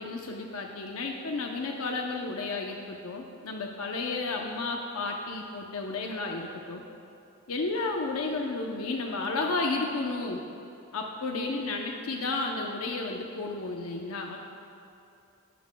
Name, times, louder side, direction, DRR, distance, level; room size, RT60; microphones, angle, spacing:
voice 1, 0.0-6.8 7.5-10.4 10.9-14.4, left 3 dB, 80° left, 1 dB, 0.7 m, -32 dB
15.5 x 12.0 x 2.3 m, 2.7 s
head